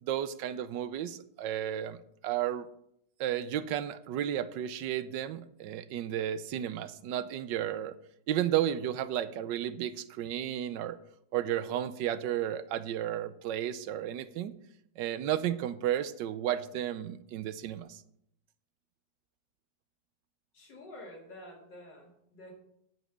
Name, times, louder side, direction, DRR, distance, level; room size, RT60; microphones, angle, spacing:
voice 1, 0.0-2.0 2.2-2.7 3.2-7.9 8.3-11.0 11.3-14.5 15.0-18.0, right 11 dB, 90° right, 13 dB, 1.3 m, -33 dB
voice 2, 20.5-22.5, left 1 dB, 80° left, -2 dB, 3.1 m, -49 dB
9.0 x 5.5 x 7.9 m, 0.75 s
omnidirectional pair, 1.9 m